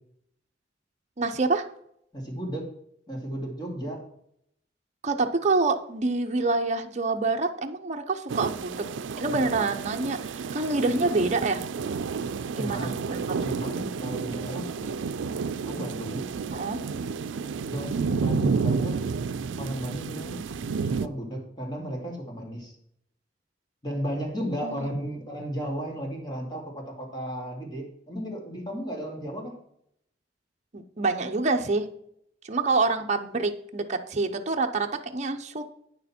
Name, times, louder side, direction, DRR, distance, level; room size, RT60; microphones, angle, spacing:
voice 1, 1.2-1.7 5.0-8.8 9.2-11.6 12.6-13.2 16.5-16.8 24.6-24.9 30.7-31.9 32.4-35.6, right 3 dB, 40° right, 4 dB, 0.7 m, -26 dB
voice 2, 2.1-2.7 3.1-4.0 12.6-13.0 13.4-14.9 15.7-16.3 17.7-19.0 19.6-20.4 21.0-22.8 23.8-29.5, equal, 25° left, 0 dB, 2.5 m, -34 dB
sound 1, 8.3-21.1, right 5 dB, 90° right, 0.4 m, -31 dB
9.2 x 6.7 x 4.4 m, 0.71 s
head